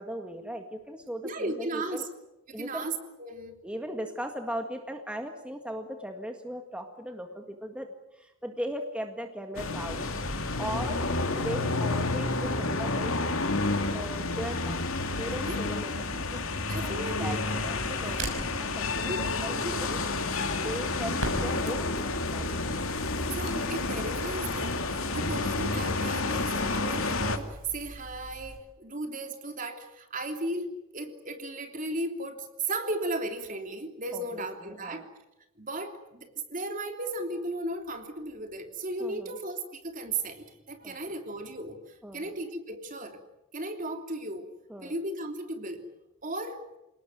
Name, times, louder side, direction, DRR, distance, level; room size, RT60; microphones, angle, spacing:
voice 1, 0.0-2.1 2.5-2.9 3.6-11.0 11.3-13.1 13.9-14.8 15.1-16.4 16.8-20.0 20.6-22.7 34.1-35.0 39.0-39.4 40.8-41.0 42.0-42.3 44.7-44.9, equal, 5° right, 4 dB, 1.9 m, -38 dB
voice 2, 1.2-2.1 2.5-3.6 15.5-15.7 16.7-17.5 19.1-19.2 19.6-19.7 23.2-35.0 35.6-43.2 43.5-44.5 44.8-45.8 46.2-46.6, right 2 dB, 40° right, 5 dB, 3.1 m, -35 dB
sound 1, 9.6-27.4, left 3 dB, 80° left, 2.6 m, -30 dB
Crackle, 17.6-28.6, right 1 dB, 65° right, 6.6 m, -42 dB
28.5 x 19.0 x 9.4 m, 0.94 s
head